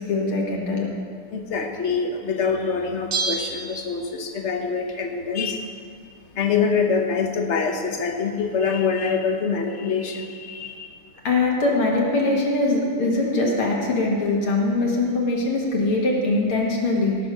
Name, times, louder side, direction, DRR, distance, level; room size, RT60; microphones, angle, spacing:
voice 1, 0.1-0.9 11.2-17.2, left 2 dB, 75° left, -2 dB, 2.5 m, -22 dB
voice 2, 1.3-5.8 6.3-10.9, left 5 dB, 45° left, 4 dB, 1.0 m, -25 dB
Bell, 3.1-4.5 4.8-4.9, right 3 dB, 85° right, 0.5 m, -29 dB
17.5 x 6.3 x 6.2 m, 2.2 s
omnidirectional pair, 2.4 m